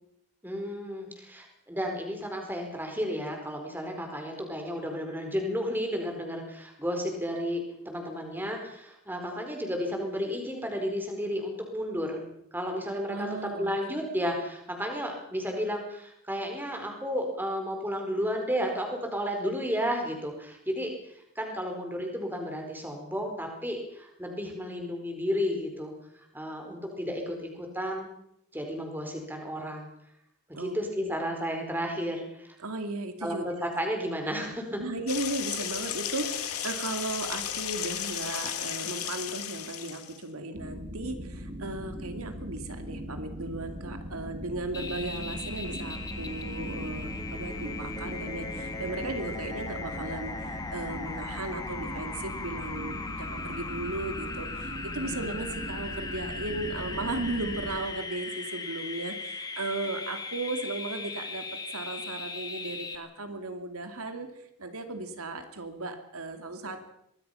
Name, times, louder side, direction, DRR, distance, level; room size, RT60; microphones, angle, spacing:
voice 1, 0.4-12.2 12.5-25.9 26.3-28.1 28.5-29.9 30.6-32.6 33.2-34.8 55.0-55.2, equal, 10° right, 3 dB, 4.5 m, -32 dB
voice 2, 13.1-13.7 30.5-30.7 32.6-33.5 34.8-61.4 61.7-66.9, right 2 dB, 80° right, 7 dB, 2.7 m, -36 dB
sound 1, 35.1-40.2, left 9 dB, 85° left, 2.7 m, -34 dB
sound 2, 40.5-57.8, equal, 40° right, 4.1 m, -40 dB
sound 3, 44.7-63.0, left 3 dB, 15° left, 1.9 m, -38 dB
24.5 x 20.5 x 5.8 m, 0.75 s
head